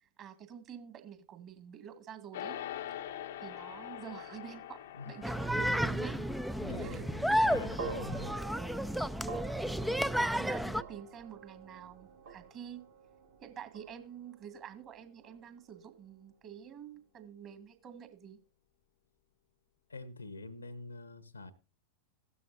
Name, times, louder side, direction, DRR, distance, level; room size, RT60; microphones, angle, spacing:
voice 1, 0.0-2.6 3.4-6.4 6.8-7.4 9.2-9.5 10.1-12.8 13.4-18.4, right 8 dB, 35° right, 2.1 m, -48 dB
sound 1, 2.3-11.8, left 11 dB, 60° left, 0.8 m, -46 dB
sound 2, 5.2-10.8, equal, ahead, 0.5 m, -32 dB
voice 2, 6.6-8.3 19.9-21.5, left 3 dB, 80° left, 1.2 m, -44 dB
sound 3, 7.8-16.1, right 7 dB, 50° right, 2.2 m, -49 dB
16.0 x 12.5 x 2.7 m
figure-of-eight pair, 90°, 0 cm